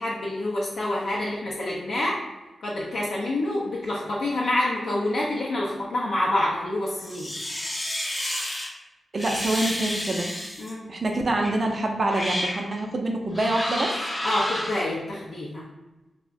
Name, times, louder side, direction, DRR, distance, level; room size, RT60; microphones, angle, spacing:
voice 1, 0.0-2.1 2.6-7.3 10.6-10.8 14.2-15.7, left 1 dB, 75° left, -6 dB, 0.5 m, -27 dB
sound 1, 6.9-8.7 9.2-10.7 11.4-11.6 12.0-12.6 13.3-14.8, left 1 dB, 25° left, 0.8 m, -30 dB
voice 2, 9.1-10.3 10.9-14.0, right 2 dB, 50° right, 2 dB, 0.4 m, -26 dB
2.4 x 2.1 x 3.6 m, 1.1 s
supercardioid pair, 45°, 0 cm